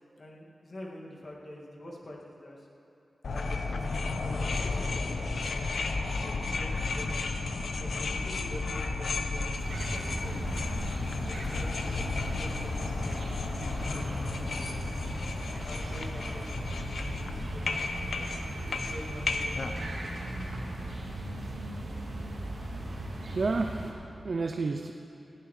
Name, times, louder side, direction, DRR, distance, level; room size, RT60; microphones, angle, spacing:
voice 1, 0.2-2.7 3.3-7.3 7.8-10.5 11.2-14.6 15.3-18.1 18.5-20.0, left 1 dB, 45° left, -3 dB, 2.1 m, -46 dB
sound 1, 3.2-19.8, left 3 dB, 75° left, 0.9 m, -33 dB
sound 2, 9.5-23.9, right 1 dB, 70° right, 2.8 m, -38 dB
voice 2, 23.0-24.9, right 3 dB, 50° right, 5 dB, 0.5 m, -31 dB
19.0 x 15.5 x 3.2 m, 2.9 s
wide cardioid pair, 135°, 0 cm